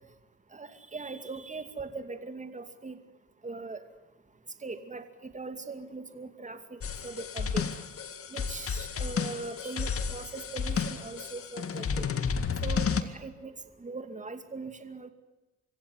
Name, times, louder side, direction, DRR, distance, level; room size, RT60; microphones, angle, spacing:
voice 1, 0.5-3.0 3.4-3.8 4.6-7.7 8.3-12.1 12.6-13.5 13.8-15.1, right 3 dB, 25° right, 8 dB, 2.5 m, -40 dB
sound 1, 6.8-13.0, left 6 dB, 50° left, 2.0 m, -32 dB
25.5 x 16.0 x 9.7 m, 1.1 s
cardioid pair, 90°, 30 cm